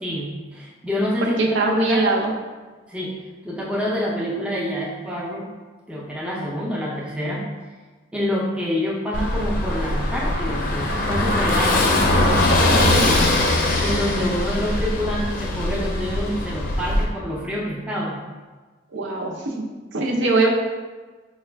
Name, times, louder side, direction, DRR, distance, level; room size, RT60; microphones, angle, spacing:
voice 1, 0.0-2.1 2.9-3.2 3.4-5.5 5.9-7.4 8.1-11.9 13.8-18.2, equal, 5° right, -4 dB, 0.5 m, -27 dB
voice 2, 1.2-2.3 12.7-13.2 18.9-20.5, right 3 dB, 80° right, -1 dB, 0.6 m, -22 dB
Car passing by / Engine, 9.1-17.0, left 1 dB, 45° left, 0.5 m, -21 dB
4.8 x 2.2 x 3.3 m, 1.3 s
head